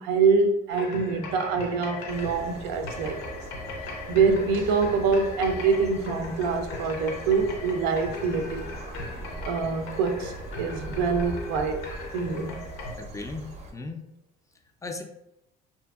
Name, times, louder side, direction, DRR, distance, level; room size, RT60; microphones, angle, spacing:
voice 1, 0.0-3.4 4.1-8.7 9.4-11.9 12.1-12.6, right 5 dB, 85° right, 0.4 m, -25 dB
sound 1, 0.7-12.9, left 3 dB, 75° left, 0.6 m, -39 dB
sound 2, 2.1-13.7, right 1 dB, 35° right, 0.5 m, -41 dB
voice 2, 13.0-14.0 14.8-15.0, left 3 dB, 15° left, 0.3 m, -36 dB
2.7 x 2.5 x 2.3 m
supercardioid pair, 85°, 21 cm